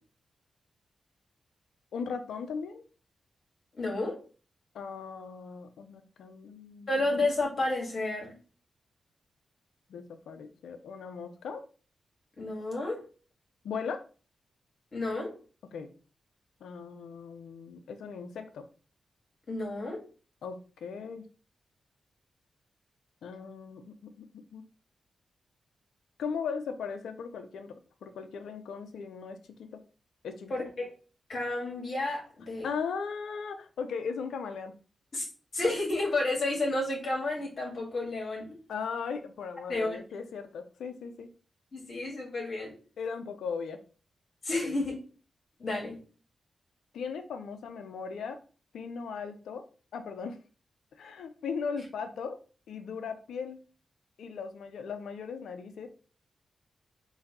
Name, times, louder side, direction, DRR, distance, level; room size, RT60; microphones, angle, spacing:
voice 1, 1.9-2.8 4.7-6.9 9.9-11.6 13.6-14.0 15.7-15.9 16.6-18.7 20.4-21.3 23.2-24.7 26.2-29.8 30.2-30.6 32.6-34.7 38.7-41.3 43.0-43.8 44.6-44.7 46.9-48.4 48.7-49.7 49.9-50.4 51.0-52.4 52.7-53.6 54.2-55.9, left 5 dB, 85° left, 9 dB, 0.4 m, -38 dB
voice 2, 3.8-4.2 6.9-8.3 12.4-13.0 14.9-15.3 19.5-20.0 30.5-30.9 31.3-32.7 35.1-35.3 35.5-38.5 39.7-40.0 41.7-42.7 44.4-44.9 45.6-46.0, left 2 dB, 60° left, -2 dB, 2.0 m, -31 dB
3.9 x 2.6 x 4.0 m, 0.37 s
supercardioid pair, 45°, 0 cm